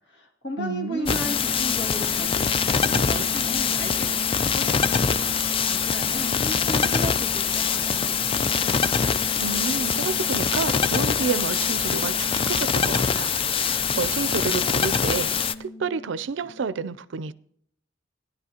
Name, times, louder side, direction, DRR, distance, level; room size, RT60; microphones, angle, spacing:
voice 1, 0.1-8.6, left 1 dB, 65° left, 2.2 m, -36 dB
voice 2, 0.6-1.3 9.4-17.3, right 5 dB, 75° right, 0.4 m, -30 dB
sound 1, 1.1-15.5, left 6 dB, 30° left, 0.4 m, -24 dB
sound 2, 1.2-16.8, left 2 dB, 90° left, 2.2 m, -38 dB
17.0 x 11.0 x 2.8 m
head